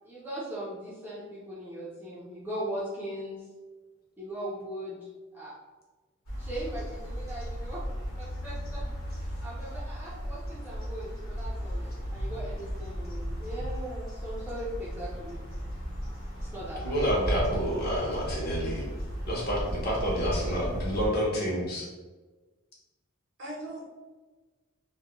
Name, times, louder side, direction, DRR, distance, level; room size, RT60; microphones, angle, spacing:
voice 1, 0.0-3.5 4.2-5.5 6.4-8.8 9.2-15.4 16.4-17.0, right 1 dB, 10° right, -8 dB, 0.4 m, -39 dB
sound 1, 6.3-21.1, equal, 80° left, 0.9 m, -35 dB
voice 2, 16.8-18.9 19.2-21.9, equal, 45° left, -4 dB, 0.7 m, -29 dB
voice 3, 18.0-18.5 23.4-23.8, right 1 dB, 55° right, -3 dB, 0.7 m, -41 dB
2.2 x 2.1 x 2.9 m, 1.3 s
head